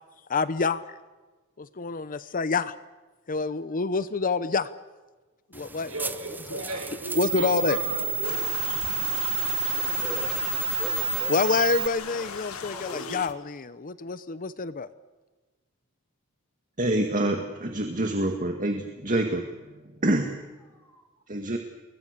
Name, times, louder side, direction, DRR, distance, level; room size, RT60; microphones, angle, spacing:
voice 1, 0.3-0.8 1.6-2.7 3.3-4.7 5.5-5.9 7.2-7.8 11.3-14.9, left 4 dB, 40° left, 14 dB, 0.8 m, -27 dB
sound 1, 5.5-11.9, right 4 dB, 10° right, 0.8 m, -29 dB
voice 2, 5.8-8.4, right 2 dB, 80° right, 5 dB, 6.1 m, -36 dB
sound 2, 8.2-13.3, left 6 dB, 80° left, 1.6 m, -38 dB
voice 3, 9.6-12.2 12.6-13.3 20.6-21.0, equal, 10° left, 2 dB, 6.5 m, -44 dB
voice 4, 16.8-19.5 20.0-20.3 21.3-21.6, right 1 dB, 40° right, 4 dB, 2.0 m, -26 dB
29.0 x 22.0 x 6.8 m, 1.2 s
head